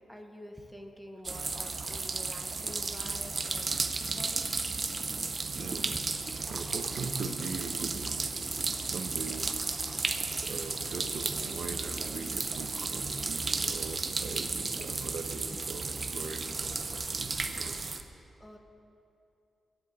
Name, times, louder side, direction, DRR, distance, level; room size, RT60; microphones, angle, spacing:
voice 1, 0.1-4.5 18.4-18.6, equal, 5° left, 4 dB, 1.0 m, -48 dB
sound 1, 1.2-18.0, right 3 dB, 30° right, 0.7 m, -34 dB
voice 2, 5.4-6.0 6.5-8.3 8.8-9.6 10.4-18.0, right 4 dB, 65° right, 6 dB, 1.0 m, -41 dB
22.5 x 10.0 x 4.2 m, 2.7 s
wide cardioid pair, 145°, 0 cm